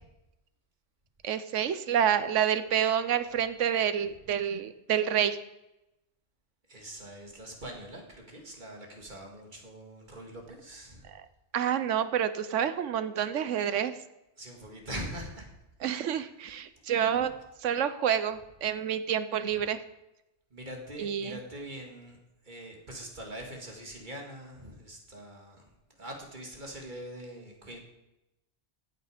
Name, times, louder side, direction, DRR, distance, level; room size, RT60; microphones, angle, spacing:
voice 1, 1.2-5.4 11.1-11.2 11.5-14.0 15.8-17.3 17.6-19.8 21.0-21.4, right 9 dB, 90° right, 12 dB, 1.1 m, -28 dB
voice 2, 6.7-11.1 14.4-15.5 17.2-17.3 20.5-22.2 22.4-25.7 26.0-27.8, right 1 dB, 40° right, 0 dB, 2.4 m, -43 dB
14.5 x 8.3 x 5.0 m, 0.93 s
omnidirectional pair, 1.2 m